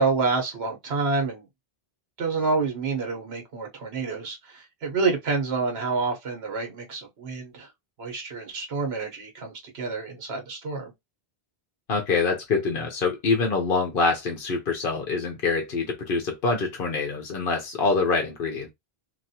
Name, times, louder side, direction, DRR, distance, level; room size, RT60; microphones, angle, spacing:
voice 1, 0.0-1.5 2.2-7.7 8.0-10.9, right 4 dB, 80° right, 1.2 m, -28 dB
voice 2, 11.9-18.7, left 4 dB, 60° left, 0.9 m, -25 dB
3.0 x 2.6 x 2.7 m
omnidirectional pair, 1.0 m